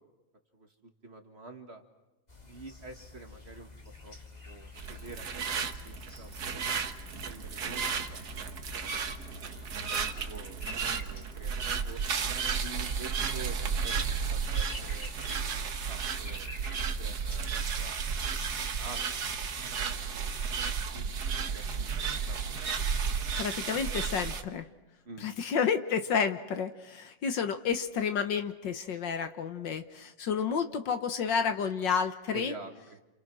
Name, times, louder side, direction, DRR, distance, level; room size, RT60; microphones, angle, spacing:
voice 1, 0.5-1.8 2.4-3.7 4.0-4.2 4.4-6.9 7.3-8.6 9.2-12.0 12.6-16.5 17.0-19.1 19.6-22.6 25.1-25.3 32.3-33.0, right 3 dB, 30° right, 4 dB, 2.1 m, -48 dB
sound 1, 2.3-19.6, left 3 dB, 20° left, 2.4 m, -48 dB
sound 2, 4.7-24.4, right 6 dB, 55° right, 1.7 m, -33 dB
voice 2, 23.4-24.7 25.2-32.5, left 6 dB, 65° left, 9 dB, 1.8 m, -30 dB
29.0 x 28.5 x 6.2 m, 1.1 s
omnidirectional pair, 2.2 m